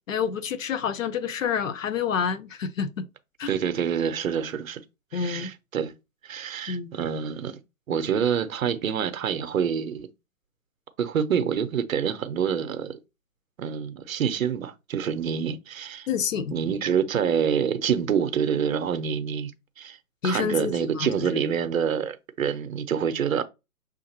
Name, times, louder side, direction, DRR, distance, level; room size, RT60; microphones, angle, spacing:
voice 1, 0.1-3.0 3.4-3.5 5.1-5.5 6.7-6.9 16.1-16.6 20.2-21.4, left 7 dB, 55° left, 0.6 m, -28 dB
voice 2, 3.5-4.8 5.1-5.9 6.2-7.6 7.9-10.1 11.0-13.0 13.6-16.1 16.5-19.5 19.8-20.0 20.2-23.4, right 7 dB, 60° right, 0.7 m, -27 dB
6.4 x 2.5 x 2.8 m
hypercardioid pair, 140°, 47 cm